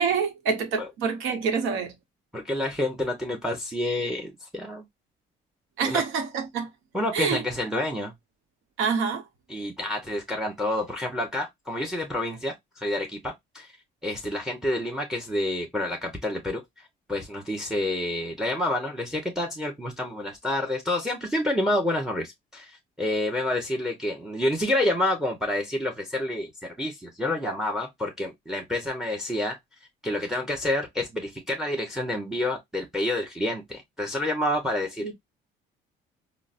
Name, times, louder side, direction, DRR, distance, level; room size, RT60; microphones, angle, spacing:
voice 1, 0.0-2.0 5.8-6.7 7.1-7.4 8.8-9.2 35.0-35.1, right 6 dB, 80° right, 0.9 m, -26 dB
voice 2, 2.3-4.8 5.8-6.0 6.9-8.1 9.5-13.7 14.0-16.6 17.1-29.6 30.0-35.1, left 1 dB, 5° right, 0.8 m, -28 dB
3.9 x 2.0 x 2.4 m
cardioid pair, 85°, 20 cm